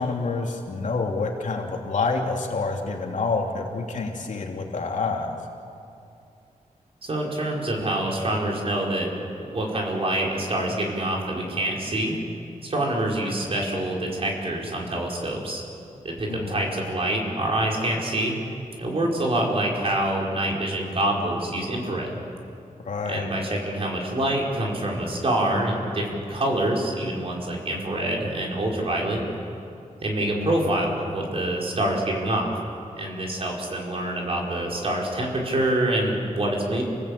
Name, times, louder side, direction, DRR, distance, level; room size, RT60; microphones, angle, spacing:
voice 1, 0.0-5.4 16.3-16.6 22.9-23.4 30.2-30.8, left 4 dB, 65° left, 1 dB, 3.0 m, -28 dB
voice 2, 7.0-9.1 9.5-12.2 12.6-15.6 16.0-18.4 18.8-22.2 23.1-29.3 30.0-32.5 33.0-36.8, right 1 dB, 45° right, -2 dB, 4.8 m, -26 dB
29.5 x 19.0 x 8.6 m, 2.6 s
wide cardioid pair, 175°, 14 cm